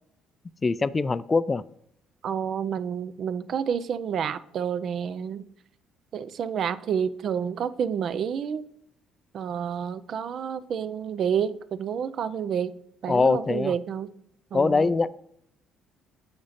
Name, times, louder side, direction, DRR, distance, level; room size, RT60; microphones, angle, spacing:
voice 1, 0.6-1.6 13.1-13.7 14.5-15.2, left 4 dB, 25° left, 0.3 m, -23 dB
voice 2, 2.2-5.4 6.1-8.6 9.3-12.7 13.0-14.1 14.5-14.9, right 7 dB, 55° right, 0.5 m, -29 dB
8.6 x 5.2 x 4.2 m
cardioid pair, 95°, 0 cm